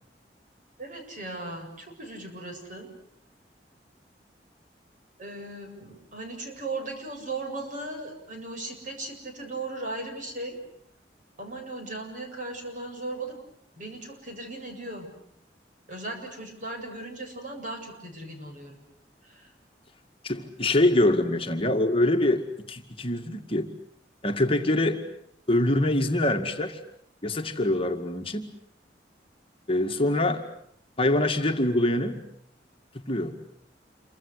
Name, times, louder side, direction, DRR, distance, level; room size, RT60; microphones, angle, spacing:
voice 1, 0.8-2.9 5.2-10.6 11.4-13.4 13.8-15.1 15.9-18.8 19.2-19.5, right 2 dB, 50° right, 4 dB, 7.5 m, -37 dB
voice 2, 20.2-23.7 24.2-25.0 25.5-26.8 27.2-28.5 29.7-30.4 31.0-32.2 32.9-33.3, left 1 dB, 30° left, 5 dB, 2.1 m, -24 dB
28.0 x 25.0 x 8.2 m, 0.68 s
head